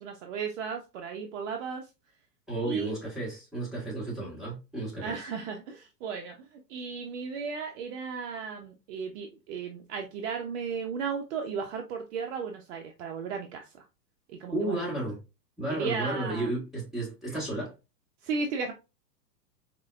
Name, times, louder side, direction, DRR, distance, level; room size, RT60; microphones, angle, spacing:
voice 1, 0.0-1.9 2.6-2.9 5.0-13.8 14.3-14.8 15.7-16.5 18.2-18.7, right 5 dB, 45° right, 0.5 m, -35 dB
voice 2, 2.5-5.2 14.5-15.2 15.6-17.7, right 2 dB, ahead, 1.2 m, -33 dB
4.3 x 2.1 x 2.3 m
hypercardioid pair, 125°, 50 cm